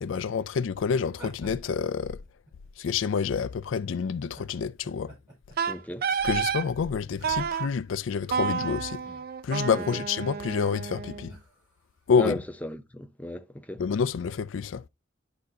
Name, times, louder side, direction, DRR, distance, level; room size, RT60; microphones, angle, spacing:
voice 1, 0.0-2.2 2.8-5.1 6.2-9.0 9.4-11.3 12.1-12.3 13.8-14.9, left 6 dB, 75° left, 0.4 m, -28 dB
sound 1, 1.1-2.9 3.5-3.7 4.2-7.9 8.2-9.3 9.6-9.8 10.4-10.8 11.3-12.0, right 1 dB, 20° right, 4.7 m, -50 dB
Wind instrument woodwind instrument, 5.6-6.7 7.2-7.7 8.3-11.3, right 6 dB, 50° right, 0.5 m, -30 dB
voice 2, 5.7-6.1 9.7-10.0 12.2-13.8, left 1 dB, 10° left, 0.6 m, -35 dB
11.5 x 4.1 x 2.7 m
head